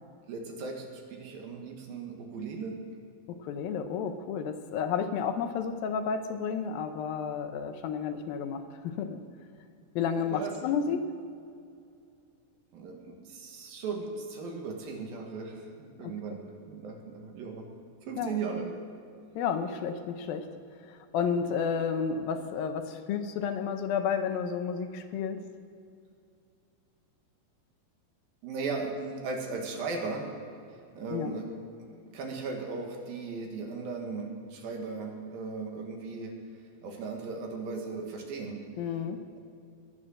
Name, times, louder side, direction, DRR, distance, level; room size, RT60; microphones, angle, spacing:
voice 1, 0.3-2.8 10.1-10.5 12.7-16.4 16.7-17.7 18.1-18.8 28.4-30.3 31.0-36.4 36.8-38.7, right 4 dB, 75° right, 2 dB, 3.5 m, -37 dB
voice 2, 3.3-9.2 10.0-11.1 16.0-16.1 18.2-18.4 19.4-20.5 20.9-25.4 31.1-31.3 38.8-39.2, left 6 dB, 80° left, 7 dB, 2.6 m, -31 dB
21.0 x 9.3 x 6.4 m, 2.4 s
omnidirectional pair, 4.2 m